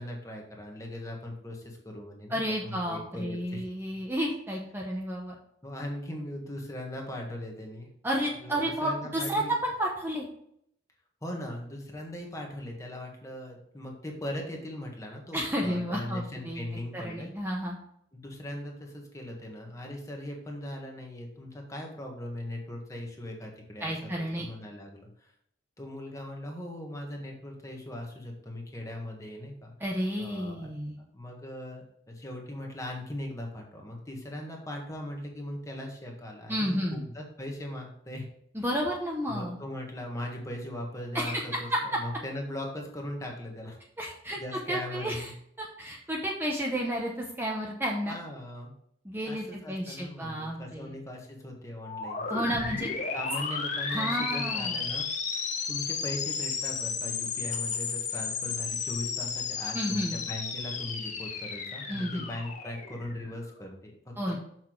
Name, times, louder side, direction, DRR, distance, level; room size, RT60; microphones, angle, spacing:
voice 1, 0.0-3.6 5.6-7.9 8.4-9.5 11.2-17.3 18.1-25.3 25.8-29.7 30.2-30.7 31.1-38.2 39.3-43.8 44.4-45.3 48.1-48.7 49.2-52.8 53.1-55.1 55.3-64.4, left 1 dB, 15° left, 1 dB, 1.5 m, -39 dB
voice 2, 2.3-5.4 8.0-10.3 15.3-16.6 16.9-17.8 23.8-24.5 29.8-31.0 36.5-37.0 38.5-39.6 41.1-41.4 44.0-44.4 44.7-45.3 45.6-48.2 49.0-50.9 52.3-52.9 53.9-54.8 59.7-60.2 61.9-62.3 64.2-64.4, equal, 10° right, -2 dB, 0.9 m, -31 dB
sound 1, 51.8-63.5, left 5 dB, 40° left, 1.1 m, -33 dB
7.0 x 6.0 x 4.7 m, 0.70 s
head